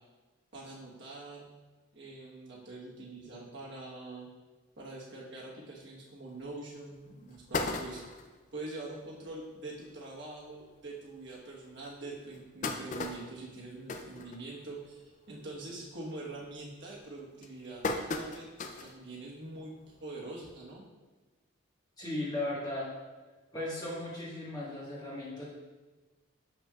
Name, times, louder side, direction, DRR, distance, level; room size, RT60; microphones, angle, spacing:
voice 1, 0.5-1.5 1.9-4.3 4.8-8.0 8.5-18.5 18.8-20.8, right 2 dB, 55° right, -4 dB, 1.3 m, -44 dB
sound 1, 6.4-6.5 7.0-7.1 7.3-8.4 8.9-9.0 9.3-9.4 9.7-9.9 10.6-10.7 11.2-11.3 12.1-14.9 15.3-15.6 16.0-16.4 17.0-19.0 19.4-19.5 20.7-20.8, left 3 dB, 35° left, 0.4 m, -37 dB
voice 2, 22.0-22.9 23.5-25.5, left 1 dB, 20° left, -8 dB, 1.5 m, -36 dB
7.2 x 5.7 x 2.4 m, 1.2 s
head